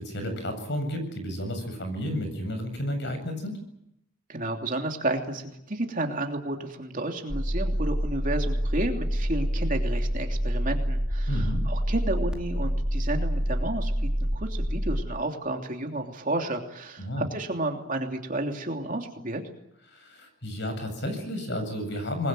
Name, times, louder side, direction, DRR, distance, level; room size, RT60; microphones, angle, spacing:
voice 1, 0.0-3.6 11.3-11.7 17.0-17.3 19.9-22.3, left 1 dB, 55° left, 7 dB, 7.8 m, -32 dB
voice 2, 4.3-13.9 14.2-19.4, right 2 dB, 40° right, 3 dB, 3.1 m, -31 dB
sound 1, 7.3-15.0, equal, 5° right, 2.4 m, -27 dB
26.5 x 21.5 x 9.2 m, 0.81 s
head